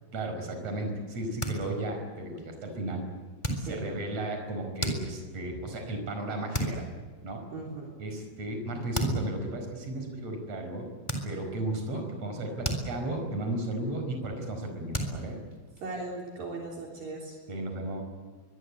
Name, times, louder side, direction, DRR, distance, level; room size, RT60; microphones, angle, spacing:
voice 1, 0.1-3.0 3.6-6.8 7.2-7.4 8.0-10.9 11.2-15.4 17.5-18.0, right 1 dB, 40° right, 4 dB, 6.0 m, -34 dB
sound 1, 1.2-2.0 2.4-2.7 3.4-4.1 4.5-5.5 6.0-6.2 6.5-6.9 7.3-7.4 8.4-8.5 8.9-9.3 9.9-10.1 11.1-11.7 12.1-13.4 13.7-14.0 14.3-14.4 14.9-16.2, right 1 dB, 5° left, 3.2 m, -34 dB
voice 2, 7.5-7.9 15.8-17.4, right 3 dB, 60° right, -2 dB, 5.2 m, -38 dB
24.0 x 22.0 x 8.4 m, 1.4 s
omnidirectional pair, 4.6 m